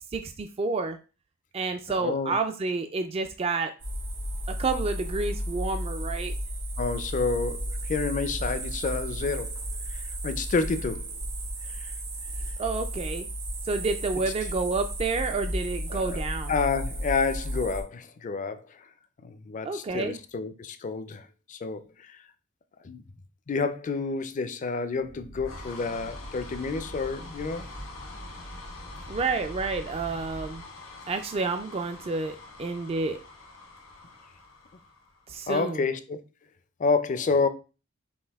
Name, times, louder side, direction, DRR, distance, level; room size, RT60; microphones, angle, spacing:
voice 1, 0.1-1.0 1.5-3.7 4.5-6.3 12.6-13.3 13.6-16.5 19.6-20.2 29.1-30.6 31.1-33.2 35.3-35.8, right 3 dB, 30° right, 0.3 m, -29 dB
voice 2, 2.0-2.3 6.8-9.5 10.2-11.1 11.8-11.9 15.9-16.2 16.5-18.6 19.2-21.8 22.8-23.0 23.5-27.7 35.5-36.2 36.8-37.5, left 4 dB, 35° left, 0.4 m, -29 dB
sound 1, 3.8-17.8, right 1 dB, 90° right, 2.1 m, -33 dB
sound 2, 24.9-35.4, left 1 dB, 85° left, 1.5 m, -43 dB
5.3 x 2.5 x 3.4 m
head